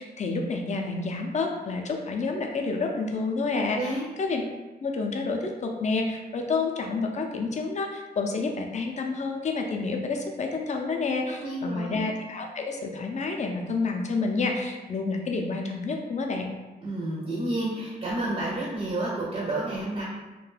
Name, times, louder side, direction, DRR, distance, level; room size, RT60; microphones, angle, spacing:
voice 1, 0.0-3.8 4.2-4.4 4.8-16.5, left 3 dB, 45° left, 2 dB, 0.4 m, -29 dB
voice 2, 3.7-4.1 11.4-12.0 16.8-20.0, right 1 dB, 40° right, -5 dB, 0.5 m, -30 dB
2.3 x 2.2 x 3.1 m, 1.1 s
wide cardioid pair, 105°, 17 cm